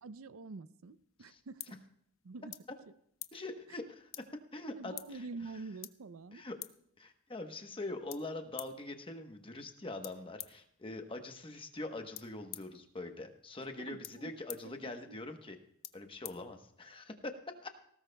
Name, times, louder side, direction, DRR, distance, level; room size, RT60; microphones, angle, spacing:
voice 1, 0.0-1.8 2.2-2.5 4.7-6.4 13.8-14.3 14.6-14.7 15.1-15.2, right 3 dB, 75° right, 14 dB, 0.5 m, -46 dB
sound 1, 0.8-17.1, left 15 dB, 65° left, 0.7 m, -53 dB
voice 2, 3.3-4.3 4.5-5.2 6.3-6.6 7.0-15.6 15.9-17.3 17.6-17.7, left 2 dB, 25° left, 5 dB, 1.0 m, -43 dB
19.5 x 17.5 x 2.3 m, 0.68 s
head